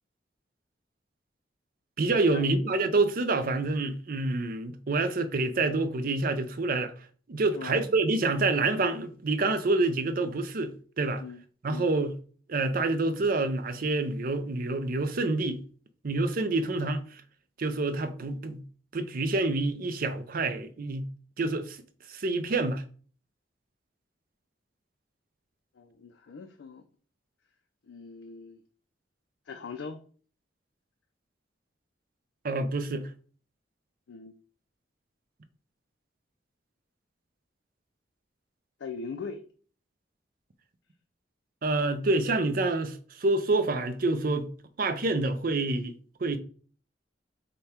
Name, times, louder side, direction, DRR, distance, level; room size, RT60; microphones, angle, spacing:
voice 1, 2.0-6.9 7.3-11.2 11.6-12.1 12.5-15.6 16.0-17.2 17.6-18.6 18.9-21.1 21.4-21.8 22.1-22.8 32.4-33.1 41.6-44.5 44.8-45.9 46.2-46.4, right 2 dB, 50° right, 0.5 m, -27 dB
voice 2, 11.2-11.9 25.8-26.8 27.9-28.6 29.5-30.0 34.1-34.4 38.8-39.4, left 5 dB, 85° left, 0.4 m, -41 dB
5.2 x 2.2 x 4.2 m
head